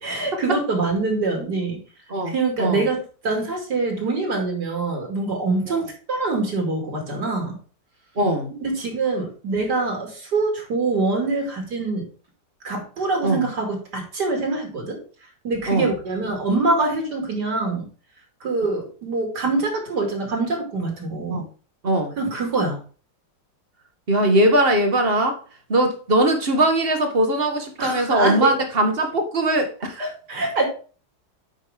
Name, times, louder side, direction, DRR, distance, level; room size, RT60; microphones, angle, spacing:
voice 1, 0.0-1.8 2.3-7.6 8.5-12.1 12.6-15.0 15.4-17.9 18.4-21.4 22.2-22.8 27.8-28.5 30.0-30.6, right 3 dB, 60° right, 2 dB, 3.0 m, -24 dB
voice 2, 8.2-8.5 13.2-13.5 15.7-15.9 21.3-21.5 21.8-22.2 24.1-25.4 25.7-30.0, right 1 dB, 35° right, 5 dB, 1.5 m, -20 dB
9.1 x 5.3 x 3.6 m, 0.38 s
omnidirectional pair, 2.0 m